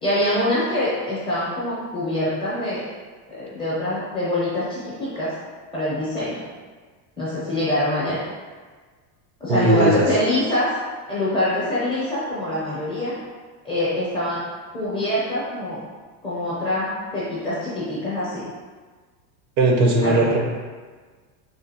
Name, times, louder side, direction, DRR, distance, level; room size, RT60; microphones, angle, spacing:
voice 1, 0.0-2.8 3.3-5.3 5.7-6.4 7.2-8.2 9.4-10.8 11.1-13.1 13.6-14.4 14.7-15.8 16.2-18.5 20.0-20.2, left 1 dB, 10° left, -9 dB, 0.5 m, -24 dB
voice 2, 9.5-10.1 19.6-20.4, right 2 dB, 75° right, 0 dB, 0.9 m, -18 dB
3.4 x 2.5 x 2.7 m, 1.4 s
supercardioid pair, 145°, 49 cm